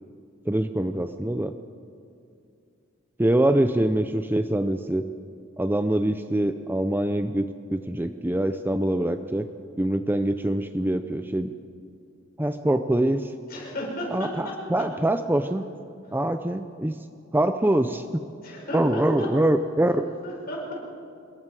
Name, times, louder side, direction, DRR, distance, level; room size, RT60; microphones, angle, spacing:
voice 1, 0.5-1.5 3.2-5.0 5.6-7.4 7.7-9.5 9.8-11.5 12.4-13.3 14.1-15.6 16.1-17.0 17.3-18.3 18.7-20.1, right 1 dB, 10° right, 9 dB, 0.5 m, -24 dB
voice 2, 13.5-14.6 18.4-19.3 20.2-20.8, left 1 dB, 50° left, -2 dB, 5.8 m, -34 dB
27.0 x 22.0 x 4.8 m, 2.4 s
head